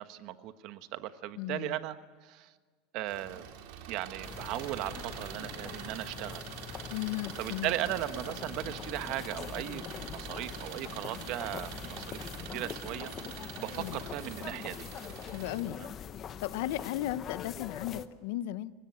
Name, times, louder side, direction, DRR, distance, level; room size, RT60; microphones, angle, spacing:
voice 1, 0.0-2.0 2.2-2.5 2.9-3.4 3.9-6.4 7.4-14.9 15.8-15.9, right 14 dB, 50° right, 11 dB, 1.2 m, -37 dB
voice 2, 1.4-1.8 6.9-7.7 13.8-14.0 15.3-15.8 16.4-18.7, left 14 dB, 70° left, 16 dB, 0.9 m, -35 dB
Engine, 3.1-15.6, right 9 dB, 65° right, 3.7 m, -45 dB
sound 1, 4.2-18.1, left 8 dB, 30° left, 0.9 m, -43 dB
29.5 x 17.5 x 9.3 m, 1.5 s
supercardioid pair, 155°, 0 cm